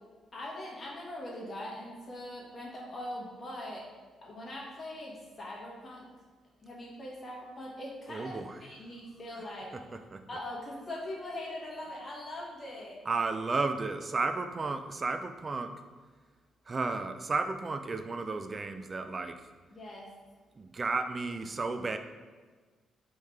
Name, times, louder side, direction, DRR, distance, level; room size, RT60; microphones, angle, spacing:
voice 1, 0.3-3.9 4.2-6.1 6.6-9.7 10.3-13.0 19.7-20.1, left 1 dB, 35° left, -3 dB, 1.2 m, -41 dB
voice 2, 8.1-8.6 9.7-10.2 13.1-15.7 16.7-19.5 20.6-22.0, right 3 dB, 30° right, 8 dB, 0.3 m, -33 dB
4.5 x 3.2 x 3.5 m, 1.4 s
cardioid pair, 115°, 0 cm